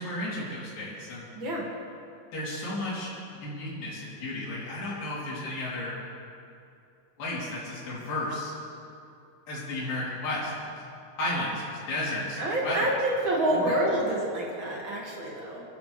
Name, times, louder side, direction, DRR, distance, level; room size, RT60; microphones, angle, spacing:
voice 1, 0.0-1.3 2.3-6.0 7.2-8.5 9.5-10.7 11.2-12.4 12.6-12.8 13.5-13.7, left 1 dB, 60° left, -8 dB, 5.4 m, -33 dB
voice 2, 1.3-1.7 12.4-15.6, right 1 dB, 35° right, -3 dB, 2.6 m, -27 dB
22.5 x 14.0 x 3.5 m, 2.5 s
omnidirectional pair, 4.6 m